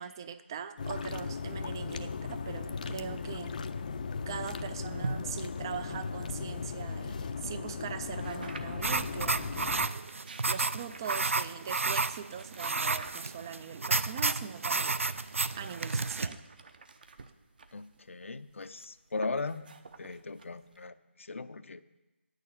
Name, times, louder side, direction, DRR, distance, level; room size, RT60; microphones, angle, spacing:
voice 1, 0.0-3.6 4.3-9.8 10.5-16.4, right 8 dB, 20° right, 12 dB, 0.3 m, -41 dB
sound 1, 0.8-9.9, left 5 dB, 40° left, 0.5 m, -37 dB
sound 2, 5.0-7.2 8.2-9.0 9.9-11.6 12.3-13.7 14.4-20.9, right 3 dB, 45° right, 0.8 m, -46 dB
sound 3, 8.8-16.3, right 3 dB, 80° right, 0.5 m, -31 dB
voice 2, 17.7-19.7 20.0-22.0, left 3 dB, 80° left, 12 dB, 0.6 m, -38 dB
9.0 x 6.6 x 8.6 m, 1.1 s
figure-of-eight pair, 165°, 7 cm